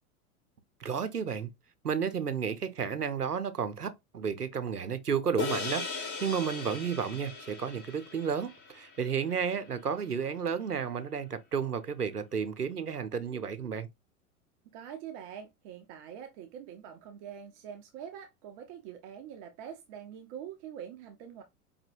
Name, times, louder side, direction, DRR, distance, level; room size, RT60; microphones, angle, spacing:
voice 1, 0.8-1.5 1.8-13.9, right 7 dB, 90° right, 0.6 m, -32 dB
sound 1, 5.4-10.0, left 4 dB, 25° left, 0.9 m, -39 dB
voice 2, 14.7-21.4, right 9 dB, 25° right, 0.4 m, -44 dB
4.9 x 2.7 x 2.6 m
figure-of-eight pair, 90°, 45 cm